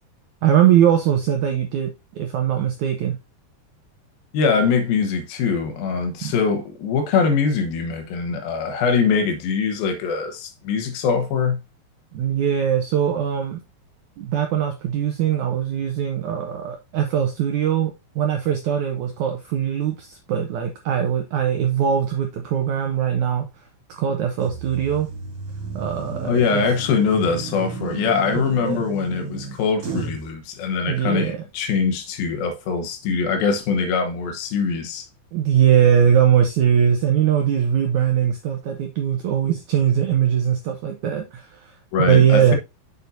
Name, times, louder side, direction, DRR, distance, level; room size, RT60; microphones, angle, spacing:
voice 1, 0.4-3.2 6.2-6.3 12.1-13.6 14.2-23.5 23.9-25.1 25.7-26.6 28.3-28.8 30.8-31.4 35.3-41.7 42.0-42.6, right 9 dB, 90° right, 1.7 m, -21 dB
voice 2, 4.3-11.6 26.2-35.1 41.9-42.6, left 5 dB, 75° left, 2.8 m, -22 dB
sound 1, 24.5-30.3, right 4 dB, 50° right, 3.1 m, -33 dB
6.7 x 6.7 x 2.7 m
omnidirectional pair, 4.5 m